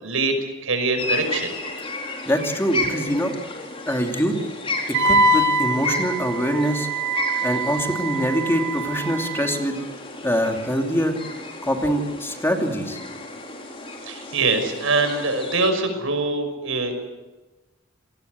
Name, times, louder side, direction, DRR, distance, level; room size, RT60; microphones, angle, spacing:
voice 1, 0.0-1.5 14.1-17.0, right 3 dB, 80° right, 7 dB, 5.9 m, -23 dB
sound 1, 1.0-15.7, left 2 dB, 30° left, 4.5 m, -33 dB
voice 2, 2.3-3.3 3.9-4.4 4.9-6.9 7.4-9.8 10.2-11.1 11.6-13.0, equal, 10° left, 3 dB, 2.7 m, -24 dB
Wind instrument woodwind instrument, 4.9-9.6, right 1 dB, 65° right, 2.2 m, -24 dB
28.5 x 20.0 x 8.1 m, 1.1 s
head